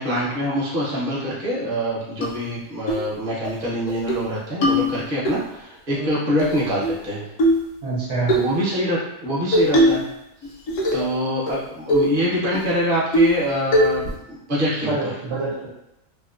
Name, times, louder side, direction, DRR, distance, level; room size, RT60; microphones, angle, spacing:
voice 1, 0.0-7.3 8.3-10.0 10.9-15.1, equal, 45° right, -7 dB, 0.8 m, -25 dB
sound 1, 2.2-2.3 2.9-3.1 3.4-3.5 3.9-4.2 4.6-5.4 6.4-7.0 7.4-7.7 8.3-8.5 9.5-10.1 10.4-11.1 11.5-11.6 11.9-12.1 12.5-12.6 13.1-13.4 13.7-14.2, equal, 80° left, 1.0 m, -20 dB
voice 2, 7.8-8.4 14.8-15.7, right 3 dB, 65° right, -6 dB, 1.0 m, -26 dB
2.8 x 2.0 x 2.3 m, 0.86 s
omnidirectional pair, 1.4 m